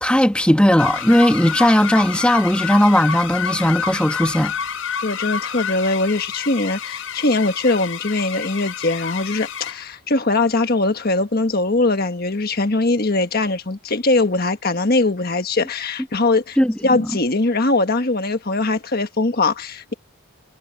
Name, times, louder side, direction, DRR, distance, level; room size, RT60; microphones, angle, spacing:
voice 1, 0.0-4.5 16.6-17.0, equal, 5° left, 1.1 m, -17 dB
sound 1, 0.8-9.9, left 7 dB, 70° left, 6.0 m, -28 dB
voice 2, 5.0-16.6 16.8-19.9, left 2 dB, 45° left, 1.4 m, -21 dB
head